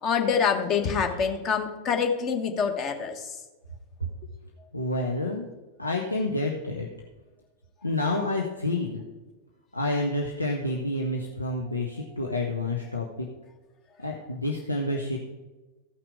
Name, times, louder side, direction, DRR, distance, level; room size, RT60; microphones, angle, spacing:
voice 1, 0.0-3.3, left 6 dB, 35° left, 5 dB, 1.4 m, -26 dB
voice 2, 4.7-5.5 5.8-6.9 7.8-9.1 9.7-13.3 14.0-15.2, left 2 dB, 85° left, 0 dB, 1.0 m, -29 dB
14.5 x 5.9 x 4.7 m, 1.2 s
figure-of-eight pair, 90°, 0 cm